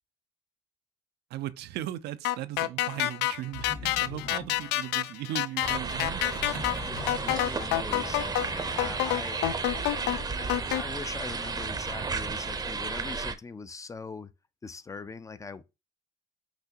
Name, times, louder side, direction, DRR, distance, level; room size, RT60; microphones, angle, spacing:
voice 1, 1.3-6.6, right 13 dB, 80° right, 0.5 m, -38 dB
sound 1, 2.2-10.8, left 14 dB, 85° left, 0.4 m, -28 dB
sound 2, 3.5-5.3 6.4-8.0, left 3 dB, 70° left, 1.1 m, -43 dB
sound 3, 5.6-13.3, right 4 dB, 25° right, 0.6 m, -33 dB
voice 2, 6.9-9.4 10.4-14.3 14.6-15.6, left 4 dB, 20° left, 0.4 m, -41 dB
5.8 x 2.8 x 2.8 m
cardioid pair, 110°, 17 cm